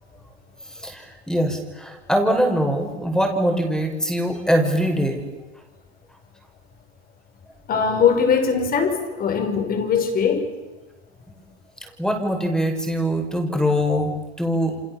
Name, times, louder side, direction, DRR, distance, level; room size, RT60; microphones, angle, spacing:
voice 1, 0.8-5.2 12.0-14.8, equal, ahead, 5 dB, 5.7 m, -22 dB
voice 2, 7.7-10.5, left 6 dB, 25° left, 7 dB, 5.8 m, -21 dB
30.0 x 26.0 x 7.3 m, 1.2 s
hypercardioid pair, 125°, 34 cm